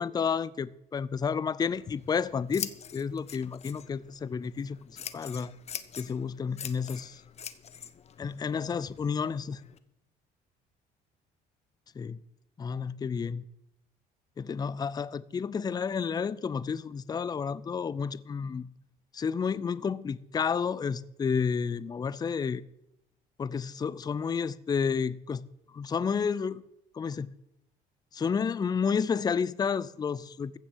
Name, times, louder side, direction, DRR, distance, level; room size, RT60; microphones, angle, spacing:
voice 1, 0.0-4.8 5.1-5.5 6.0-7.2 8.2-9.6 12.0-12.2 12.6-13.4 14.4-18.7 19.1-22.6 23.4-25.5 25.7-26.6 26.9-27.3 28.1-30.6, left 6 dB, 25° left, 0.5 m, -31 dB
Scissors, 1.6-9.8, left 8 dB, 40° left, 0.9 m, -44 dB
15.0 x 6.6 x 7.3 m
cardioid pair, 110°, 17 cm